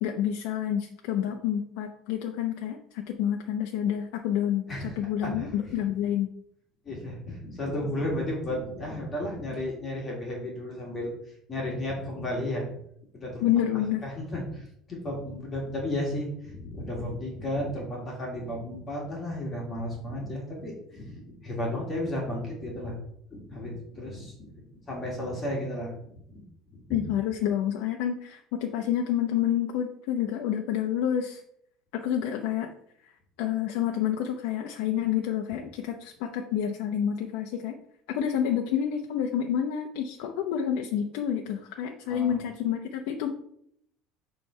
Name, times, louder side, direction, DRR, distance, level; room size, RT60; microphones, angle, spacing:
voice 1, 0.0-6.3 13.4-14.0 26.9-31.4 31.9-32.7 33.4-37.8 38.1-43.3, left 9 dB, 80° left, 3 dB, 0.7 m, -28 dB
voice 2, 4.7-5.8 6.8-11.1 11.5-12.7 13.1-13.4 14.0-22.9 23.3-24.5 24.9-25.9 26.3-26.4 26.7-26.8 42.1-42.4, left 1 dB, 20° left, -2 dB, 1.7 m, -33 dB
7.2 x 3.3 x 5.5 m, 0.70 s
cardioid pair, 170°, 0 cm